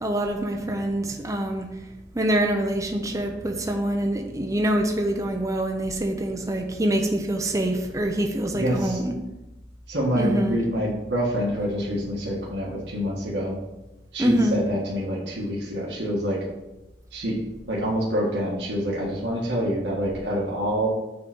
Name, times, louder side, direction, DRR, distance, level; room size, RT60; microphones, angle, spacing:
voice 1, 0.0-1.7 2.1-9.1 10.1-10.6 14.2-14.6, right 1 dB, 20° right, 3 dB, 0.6 m, -25 dB
voice 2, 8.5-9.0 9.9-13.6 14.1-16.4 17.1-17.4 17.7-20.9, equal, 75° right, -5 dB, 1.6 m, -26 dB
6.8 x 3.9 x 6.0 m, 1.0 s
head